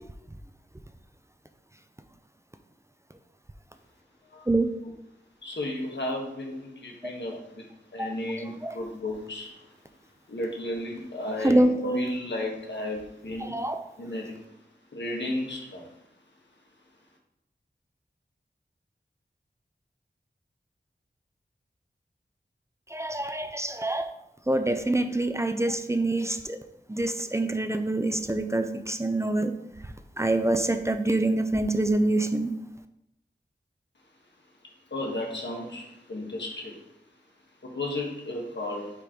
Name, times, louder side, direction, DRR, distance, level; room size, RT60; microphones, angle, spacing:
voice 1, 5.4-7.6 7.9-9.5 10.3-13.6 14.0-14.4 14.9-15.8 34.9-36.7 37.6-38.9, left 1 dB, 85° left, 0 dB, 1.3 m, -33 dB
voice 2, 13.4-13.8 22.9-24.1 24.5-26.6 26.9-29.5 30.2-32.5, right 2 dB, 15° right, 8 dB, 0.5 m, -25 dB
5.1 x 4.4 x 4.9 m, 0.80 s
wide cardioid pair, 60°, 18 cm